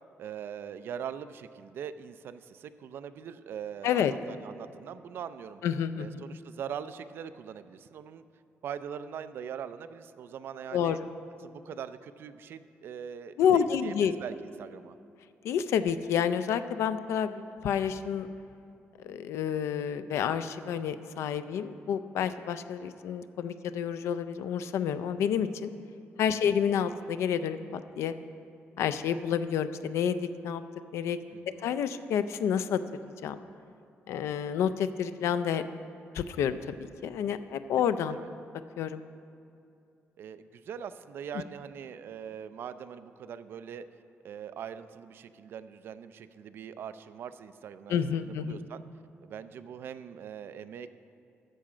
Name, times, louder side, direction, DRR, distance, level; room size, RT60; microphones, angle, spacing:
voice 1, 0.2-5.6 6.0-8.3 8.6-11.0 11.4-15.0 26.3-26.5 31.3-31.7 38.1-38.3 40.2-43.9 44.2-48.8 49.2-50.9, right 8 dB, 55° right, 12 dB, 0.4 m, -42 dB
voice 2, 5.6-6.2 10.7-11.0 13.4-14.1 15.4-18.3 19.0-25.7 26.2-28.1 28.8-30.6 30.9-31.2 31.6-33.4 34.1-35.6 36.1-38.2 38.8-39.0 47.9-48.6, left 8 dB, 85° left, 12 dB, 0.4 m, -29 dB
13.0 x 7.5 x 5.0 m, 2.6 s
cardioid pair, 180°, 5 cm